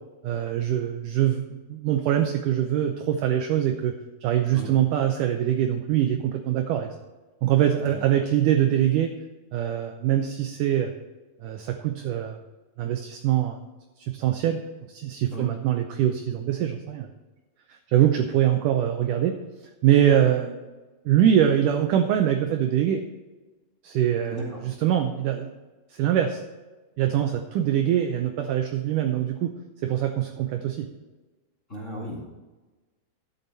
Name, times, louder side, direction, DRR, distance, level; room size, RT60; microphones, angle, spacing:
voice 1, 0.2-3.9 4.2-7.0 7.4-9.1 9.5-10.9 11.4-12.4 12.8-13.6 14.0-14.6 14.9-17.1 17.7-19.3 19.8-20.6 21.0-23.0 23.8-25.5 25.9-26.4 27.0-29.5 29.8-30.9, right 10 dB, 85° right, 6 dB, 1.8 m, -23 dB
voice 2, 31.7-32.3, left 1 dB, 25° left, -5 dB, 1.8 m, -35 dB
12.0 x 8.5 x 4.0 m, 1.2 s
omnidirectional pair, 4.5 m